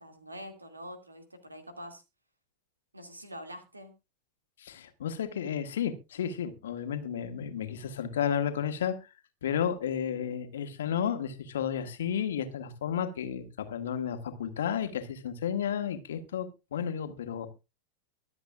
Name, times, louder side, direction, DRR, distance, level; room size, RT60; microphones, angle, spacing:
voice 1, 0.0-2.0 2.9-3.9, equal, 80° right, 2.4 m, -45 dB
voice 2, 4.6-9.0 9.4-17.5, left 8 dB, 60° left, 1.7 m, -32 dB
23.5 x 7.9 x 2.5 m
figure-of-eight pair, 90°, 0 cm